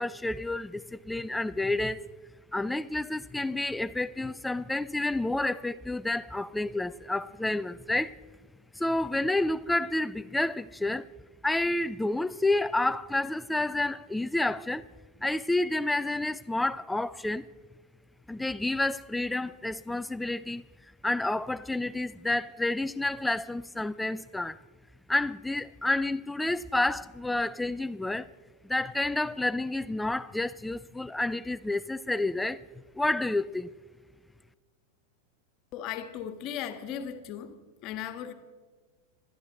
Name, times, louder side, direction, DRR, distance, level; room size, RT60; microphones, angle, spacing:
voice 1, 0.0-2.1 2.5-8.1 8.7-11.1 11.4-14.8 15.2-17.5 18.3-20.7 21.0-24.6 25.1-28.3 28.6-32.6 32.9-33.7, left 2 dB, 5° left, 0.5 m, -29 dB
voice 2, 35.7-37.6 37.8-38.3, left 9 dB, 40° left, 1.5 m, -37 dB
27.0 x 12.5 x 3.9 m
figure-of-eight pair, 90°, 0 cm